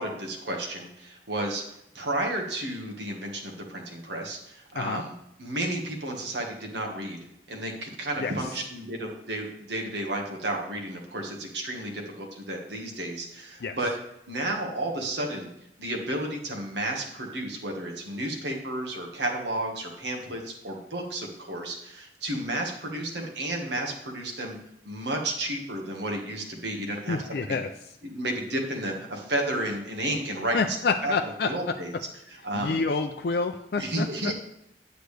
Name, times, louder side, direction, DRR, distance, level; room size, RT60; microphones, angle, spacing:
voice 1, 0.0-1.6 1.9-5.1 5.4-7.2 7.5-13.9 14.3-15.5 15.8-24.6 24.8-27.2 27.5-27.6 28.0-30.6 31.0-31.9 32.4-32.8 33.8-34.3, right 1 dB, 75° right, 1 dB, 1.5 m, -32 dB
voice 2, 27.1-27.7 30.5-31.5 32.5-34.1, left 4 dB, 60° left, 5 dB, 0.4 m, -28 dB
8.3 x 7.9 x 3.3 m, 0.79 s
head